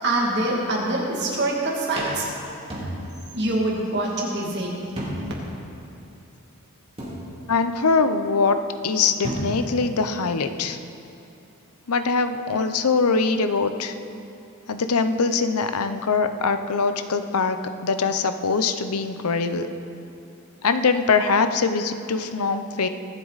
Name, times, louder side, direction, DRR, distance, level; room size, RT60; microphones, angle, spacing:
voice 1, 0.0-2.3 3.3-4.7, right 2 dB, 50° right, -3 dB, 2.3 m, -24 dB
sound 1, 1.4-1.5 2.0-3.4 3.7-3.8 5.0-5.5 5.9-6.0 7.0-7.7 8.9-9.0 9.2-9.9, equal, 25° right, 2.5 m, -32 dB
voice 2, 7.5-8.6 8.8-10.8 11.9-13.9 14.7-19.7 20.6-22.9, left 4 dB, 85° left, 9 dB, 0.7 m, -22 dB
23.5 x 8.2 x 4.1 m, 2.8 s
head